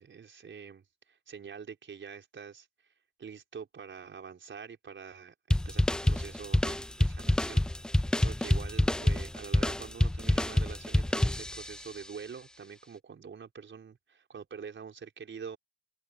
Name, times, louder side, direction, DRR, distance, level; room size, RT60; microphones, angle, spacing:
voice 1, 0.0-2.7 3.2-7.6 8.2-15.6, right 6 dB, 25° right, 5.2 m, -45 dB
sound 1, 5.5-11.9, left 1 dB, ahead, 0.3 m, -27 dB
hypercardioid pair, 90°, 45 cm